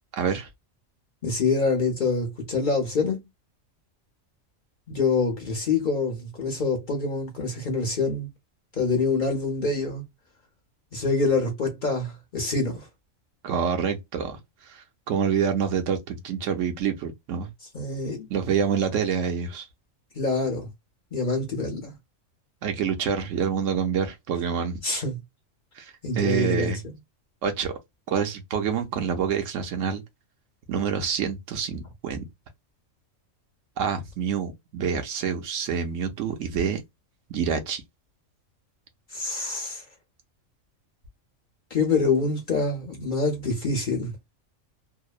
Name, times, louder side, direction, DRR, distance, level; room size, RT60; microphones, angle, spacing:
voice 1, 0.2-0.5 13.4-17.5 18.3-19.7 22.6-24.8 25.8-26.8 27.4-27.7 28.1-30.0 30.7-32.2 33.8-36.8 37.3-37.8, right 7 dB, 70° right, 1.0 m, -27 dB
voice 2, 1.2-3.2 4.9-8.3 8.8-10.0 10.9-12.9 17.7-18.3 20.1-20.7 21.1-21.9 24.8-25.2 26.0-26.9 39.1-39.8 41.7-44.2, left 3 dB, 45° left, 0.7 m, -26 dB
2.8 x 2.0 x 2.3 m
omnidirectional pair, 1.4 m